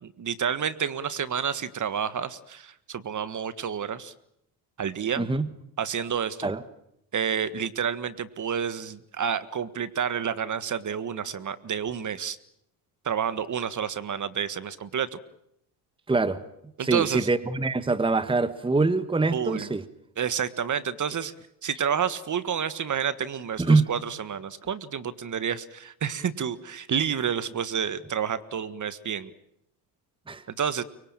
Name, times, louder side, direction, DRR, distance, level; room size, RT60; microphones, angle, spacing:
voice 1, 0.0-4.1 4.8-5.3 5.8-6.5 7.1-12.4 13.0-15.2 16.8-17.3 19.3-19.7 20.2-21.3 21.6-29.3 30.6-30.8, right 8 dB, 40° right, 14 dB, 1.6 m, -29 dB
voice 2, 5.2-5.5 6.4-6.6 16.1-16.4 16.8-19.8 23.6-23.9 30.3-30.4, right 3 dB, 10° right, 13 dB, 1.3 m, -24 dB
24.5 x 23.0 x 9.0 m, 0.77 s
supercardioid pair, 80°, 48 cm